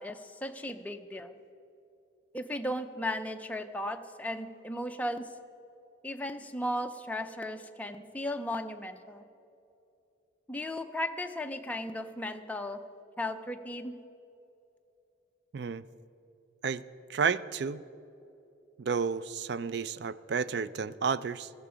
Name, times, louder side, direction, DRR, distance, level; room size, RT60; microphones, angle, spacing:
voice 1, 0.0-1.3 2.3-5.3 6.0-9.2 10.5-12.8 13.2-14.0, left 1 dB, 10° left, 5 dB, 0.5 m, -36 dB
voice 2, 15.5-15.8 16.6-16.8 17.1-17.8 18.8-21.5, right 5 dB, 55° right, 16 dB, 0.4 m, -31 dB
14.5 x 14.0 x 5.0 m, 2.9 s
head